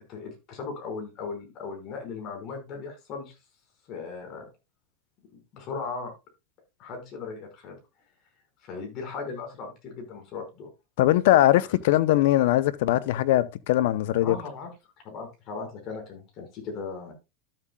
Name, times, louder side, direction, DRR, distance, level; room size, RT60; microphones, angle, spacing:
voice 1, 0.1-3.4 3.9-4.5 5.5-6.1 6.8-7.8 8.6-10.7 14.2-14.7 15.0-17.1, left 4 dB, 45° left, 5.2 m, -37 dB
voice 2, 11.0-14.4, left 14 dB, 70° left, 0.6 m, -21 dB
13.0 x 7.6 x 2.3 m
hypercardioid pair, 105°, 0 cm